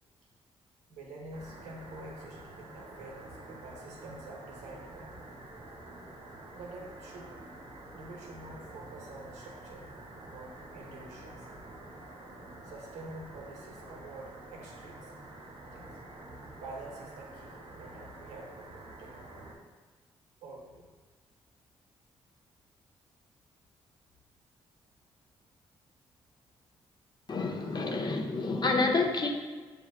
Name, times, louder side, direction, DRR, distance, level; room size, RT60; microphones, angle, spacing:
voice 1, 0.9-5.1 6.5-7.3 7.9-9.9 10.3-11.5 12.6-15.1 15.7-16.0 16.5-18.7 19.0-19.1 20.4-20.9, right 2 dB, 85° right, -1 dB, 0.9 m, -47 dB
sound 1, 1.3-19.5, right 2 dB, 65° right, 1.2 m, -48 dB
voice 2, 27.3-29.3, left 3 dB, 40° left, 2 dB, 0.7 m, -28 dB
7.1 x 2.8 x 2.4 m, 1.4 s
supercardioid pair, 50°, 11 cm